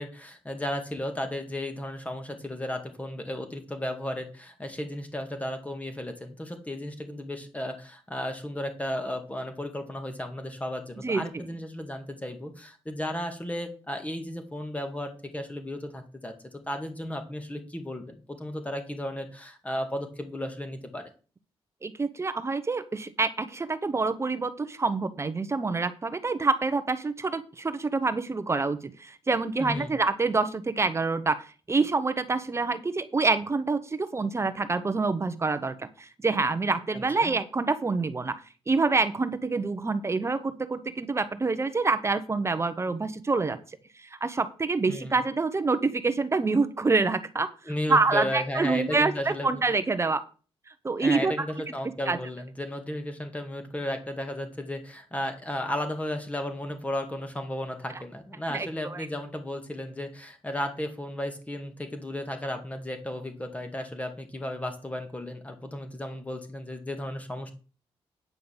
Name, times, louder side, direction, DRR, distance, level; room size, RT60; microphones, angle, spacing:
voice 1, 0.0-16.3 16.7-21.0 29.6-29.9 36.9-37.3 44.9-45.2 47.7-49.6 51.0-67.5, left 1 dB, 15° left, 5 dB, 2.3 m, -34 dB
voice 2, 11.0-11.5 21.8-38.4 38.7-43.6 44.0-47.5 47.9-50.2 50.8-51.3 52.1-52.2 58.5-59.1, right 3 dB, 25° right, 12 dB, 1.0 m, -27 dB
9.4 x 5.7 x 7.3 m, 0.37 s
cardioid pair, 105°, 11 cm